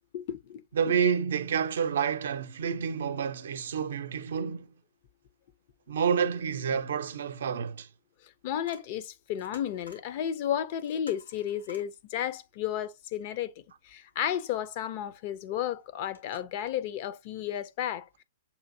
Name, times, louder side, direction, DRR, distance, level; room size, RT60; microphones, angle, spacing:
voice 1, 0.1-0.9 8.4-13.5 13.8-18.2, left 10 dB, 45° left, 0.6 m, -33 dB
voice 2, 0.7-4.7 5.9-7.9, right 7 dB, 65° right, 0.6 m, -29 dB
sound 1, 8.6-8.9 9.2-10.1 10.4-10.5 10.7-11.9 15.6-15.7 16.1-16.4, left 3 dB, 90° left, 1.6 m, -52 dB
6.9 x 2.6 x 2.7 m
figure-of-eight pair, 115°, 0 cm